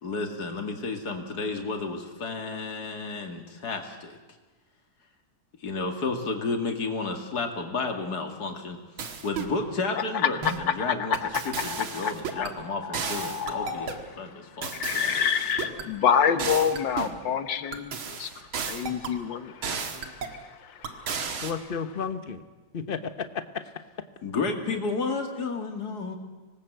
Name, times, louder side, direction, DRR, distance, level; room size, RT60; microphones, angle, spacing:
voice 1, 0.0-4.2 5.6-11.2 11.4-15.1 15.4-15.5 24.2-26.2, left 3 dB, 50° left, 4 dB, 2.7 m, -32 dB
sound 1, 9.0-9.6 10.4-10.7 11.1-12.5 12.9-14.0 14.6-15.9 16.4-17.2 17.7-19.2 19.6-20.4 20.8-21.5, right 5 dB, 85° right, 2.5 m, -34 dB
voice 2, 10.8-11.3 11.7-12.5 12.9-14.0 14.7-18.3 18.7-20.4 20.8-21.3, left 7 dB, 70° left, 10 dB, 1.8 m, -28 dB
voice 3, 21.4-22.4 22.7-23.6 24.7-24.8, left 6 dB, 35° left, 10 dB, 1.0 m, -32 dB
25.5 x 19.0 x 8.1 m, 1.3 s
omnidirectional pair, 2.2 m